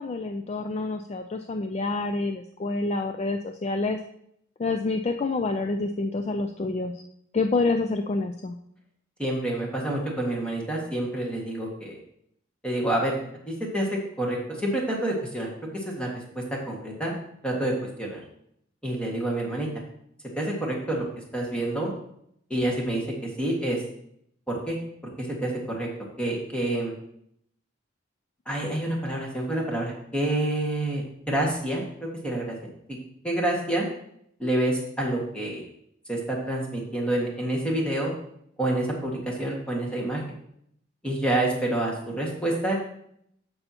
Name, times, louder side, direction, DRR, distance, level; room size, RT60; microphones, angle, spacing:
voice 1, 0.0-4.0 4.6-7.0 7.3-8.5, left 3 dB, 30° left, 6 dB, 0.3 m, -27 dB
voice 2, 9.2-12.0 12.6-13.1 13.5-16.1 16.4-17.1 17.4-17.7 18.0-18.2 18.8-19.7 20.4-21.0 21.3-21.9 22.5-23.8 24.5-24.8 25.2-25.9 26.2-27.0 28.5-32.6 32.9-33.0 33.2-33.9 34.4-35.6 36.1-38.1 38.6-40.2 41.0-42.7, right 1 dB, 5° left, -2 dB, 1.7 m, -28 dB
13.5 x 5.5 x 2.9 m, 0.73 s
head